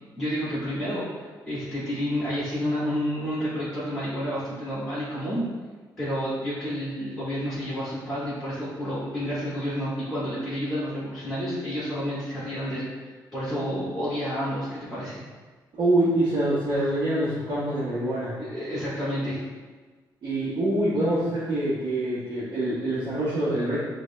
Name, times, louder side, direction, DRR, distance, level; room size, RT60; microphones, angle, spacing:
voice 1, 0.2-5.5 6.0-15.2 16.8-16.9 18.4-19.4, equal, 5° left, -10 dB, 1.5 m, -30 dB
voice 2, 15.8-18.3 20.2-23.8, right 1 dB, 60° right, -13 dB, 1.3 m, -25 dB
5.0 x 2.7 x 2.2 m, 1.4 s
cardioid pair, 75°, 8 cm